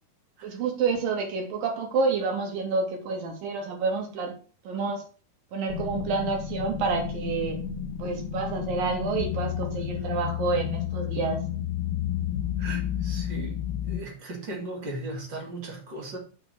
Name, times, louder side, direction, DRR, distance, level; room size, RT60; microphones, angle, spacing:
voice 1, 0.4-4.3 4.7-5.0 5.5-7.6 8.0-11.4, right 4 dB, 85° right, 3.8 m, -28 dB
sound 1, 5.7-14.0, left 9 dB, 70° left, 2.3 m, -31 dB
voice 2, 12.6-13.6 13.9-16.2, right 2 dB, 35° right, 2.7 m, -37 dB
6.9 x 5.7 x 6.5 m
omnidirectional pair, 3.9 m